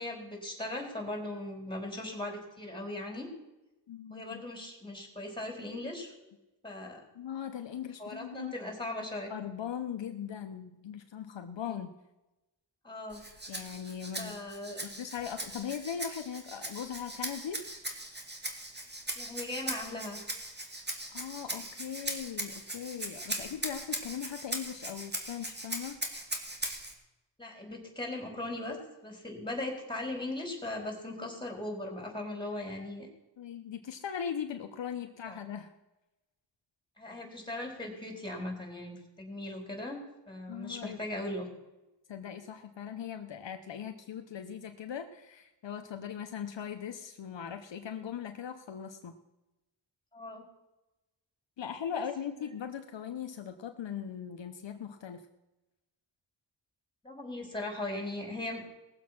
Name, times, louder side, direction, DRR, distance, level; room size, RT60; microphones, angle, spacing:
voice 1, 0.0-3.3 4.1-6.1 6.6-7.0 8.0-9.3 12.8-13.2 14.2-14.8 19.1-20.2 27.4-28.8 29.0-33.1 35.3-35.4 37.0-41.5 50.1-50.5 51.9-52.0 57.0-58.7, left 1 dB, 10° left, 1 dB, 4.3 m, -39 dB
voice 2, 3.9-4.4 7.1-8.5 9.3-11.9 13.5-14.4 14.8-17.6 21.1-26.0 33.4-35.7 40.5-41.0 42.1-49.2 51.6-55.2, left 8 dB, 70° left, 6 dB, 1.0 m, -39 dB
Rattle (instrument), 13.1-26.9, right 1 dB, 20° right, 2.2 m, -39 dB
19.0 x 7.4 x 6.0 m, 0.99 s
cardioid pair, 80°, 46 cm